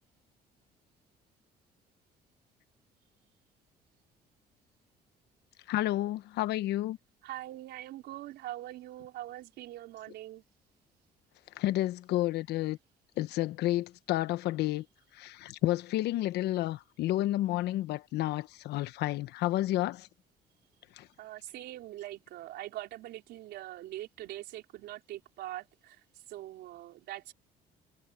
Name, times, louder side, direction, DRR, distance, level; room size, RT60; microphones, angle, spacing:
voice 1, 5.7-7.0 11.6-12.8 13.2-14.8 15.2-20.1 21.0-21.1, left 15 dB, 80° left, 1.1 m, -30 dB
voice 2, 7.2-10.4 21.2-27.3, right 15 dB, 80° right, 4.4 m, -43 dB
cardioid pair, 110°, 17 cm